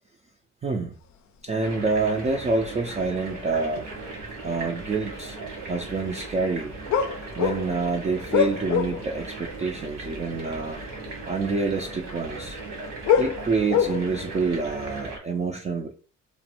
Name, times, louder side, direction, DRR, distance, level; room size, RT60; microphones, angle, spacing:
voice 1, 0.6-0.9 1.4-3.9 4.4-6.8 7.4-10.8 11.2-12.6 13.2-15.9, right 3 dB, 25° right, 1 dB, 0.3 m, -27 dB
sound 1, 1.6-15.2, right 3 dB, 80° right, 1.3 m, -38 dB
sound 2, 3.4-3.5 4.0-4.5 4.9-5.1 6.9-9.2 9.4-9.6 10.6-10.7 11.0-11.3 12.5-14.3 14.8-15.0, left 8 dB, 65° left, 0.5 m, -25 dB
3.0 x 2.2 x 2.9 m, 0.39 s
cardioid pair, 90°, 30 cm